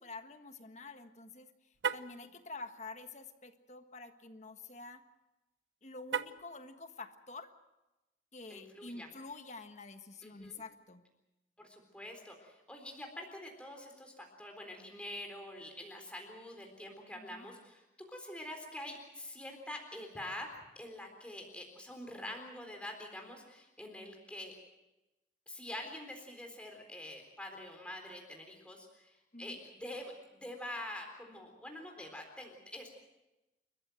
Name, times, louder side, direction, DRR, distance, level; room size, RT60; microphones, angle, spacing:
voice 1, 0.0-1.5 1.9-5.0 5.8-7.5 8.3-11.0 17.1-17.5 29.3-29.6, left 3 dB, 40° left, 8 dB, 1.5 m, -48 dB
Car, 1.7-2.2 6.0-6.6, right 6 dB, 85° right, 0.8 m, -35 dB
voice 2, 8.5-9.1 10.2-10.6 11.6-17.8 18.1-20.5 20.8-24.5 25.5-32.9, left 1 dB, 5° left, 2 dB, 3.9 m, -46 dB
29.5 x 14.5 x 7.7 m, 1.0 s
head